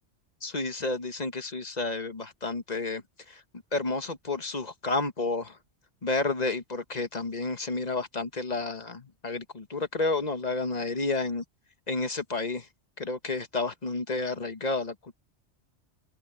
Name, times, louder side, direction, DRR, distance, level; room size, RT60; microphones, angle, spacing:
voice 1, 0.4-3.0 3.3-3.4 3.7-5.6 6.0-11.4 11.9-12.7 13.0-15.1, left 3 dB, 35° left, 1.4 m, -31 dB
omnidirectional pair, 1.2 m